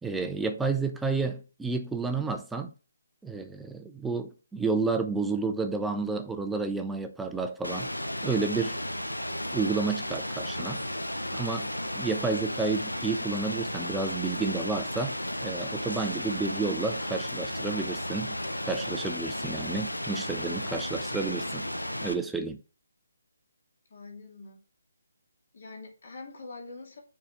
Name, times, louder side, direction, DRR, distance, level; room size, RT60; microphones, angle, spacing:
voice 1, 0.0-2.7 3.2-7.9 8.2-8.8 9.5-10.8 11.3-11.7 11.9-15.1 15.4-18.4 18.7-21.7 22.0-22.6, right 4 dB, 5° right, 0.6 m, -30 dB
Rain, 7.6-22.1, left 1 dB, 85° left, 1.0 m, -34 dB
voice 2, 23.9-24.6 25.5-27.0, left 3 dB, 50° left, 2.5 m, -44 dB
7.0 x 4.9 x 3.6 m
figure-of-eight pair, 145°, 0 cm